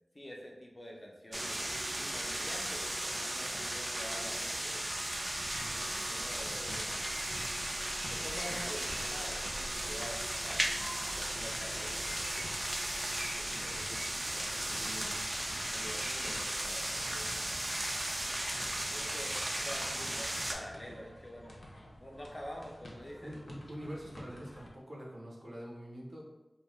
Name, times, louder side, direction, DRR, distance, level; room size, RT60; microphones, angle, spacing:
voice 1, 0.1-1.6 2.0-5.0 5.9-7.0 8.1-10.8 11.1-12.6 13.2-13.9 14.3-15.0 15.7-17.7 18.9-23.3, equal, 35° left, -2 dB, 0.5 m, -47 dB
sound 1, 1.3-20.5, right 1 dB, 40° right, 0.4 m, -36 dB
sound 2, 5.3-24.7, left 1 dB, 80° left, 0.5 m, -51 dB
voice 2, 14.8-15.1 23.2-26.2, equal, 70° right, -4 dB, 0.7 m, -45 dB
2.6 x 2.2 x 3.1 m, 1.0 s
wide cardioid pair, 70°, 0 cm